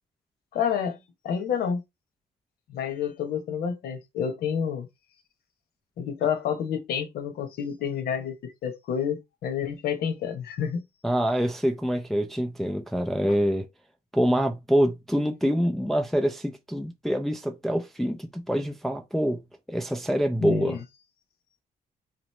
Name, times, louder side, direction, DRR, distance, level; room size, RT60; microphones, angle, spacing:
voice 1, 0.5-1.0 1.2-1.8 2.7-4.9 6.0-10.8 20.4-20.8, left 7 dB, 75° left, 1.0 m, -29 dB
voice 2, 11.0-13.7 14.1-19.4 19.7-20.8, equal, ahead, 0.4 m, -25 dB
3.9 x 3.0 x 3.1 m
cardioid pair, 155°, 16 cm